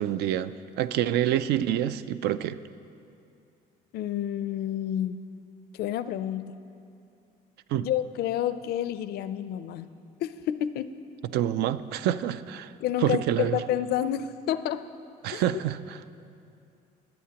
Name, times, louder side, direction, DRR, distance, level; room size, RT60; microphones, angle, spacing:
voice 1, 0.0-2.6 7.7-7.9 11.3-12.7 13.0-13.6 15.2-16.0, right 11 dB, 75° right, 14 dB, 0.4 m, -27 dB
voice 2, 3.9-5.2 5.7-6.6 7.8-9.9 10.2-10.9 12.8-14.9 15.3-15.4, left 11 dB, 70° left, 13 dB, 0.4 m, -29 dB
22.5 x 7.7 x 2.9 m, 2.6 s
cardioid pair, 110°, 17 cm